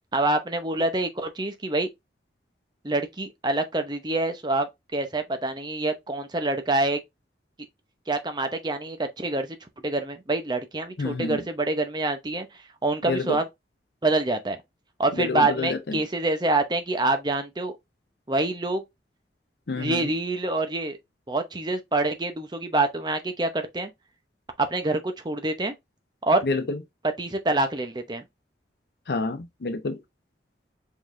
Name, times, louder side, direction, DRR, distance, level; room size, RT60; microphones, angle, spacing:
voice 1, 0.1-1.9 2.8-7.0 8.1-9.5 9.8-12.5 12.8-13.5 14.0-14.6 15.0-17.7 18.3-18.8 19.8-21.0 21.3-23.9 24.6-25.7 26.2-26.4 27.2-28.2, right 2 dB, 25° right, 0.7 m, -26 dB
voice 2, 11.0-11.4 13.1-13.4 15.2-16.0 19.7-20.1 26.4-26.8 29.1-30.0, left 3 dB, 65° left, 0.5 m, -28 dB
5.2 x 3.8 x 2.5 m
head